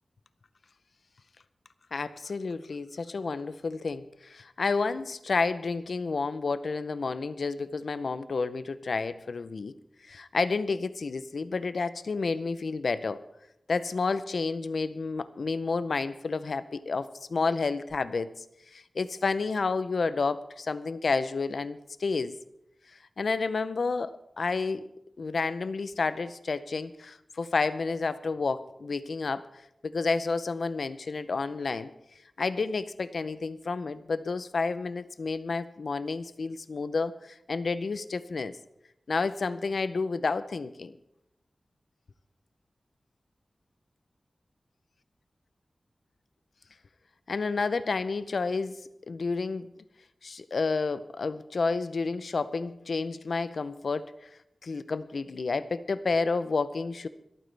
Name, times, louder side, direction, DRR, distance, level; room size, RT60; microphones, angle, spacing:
voice 1, 1.9-9.7 10.0-13.2 13.7-18.4 18.7-22.4 23.2-24.9 25.2-29.4 29.8-31.9 32.4-38.6 39.1-40.9 47.3-49.7 50.2-54.3 54.6-57.1, left 4 dB, 80° left, 14 dB, 0.6 m, -30 dB
27.0 x 9.1 x 3.4 m, 0.84 s
wide cardioid pair, 85°, 0 cm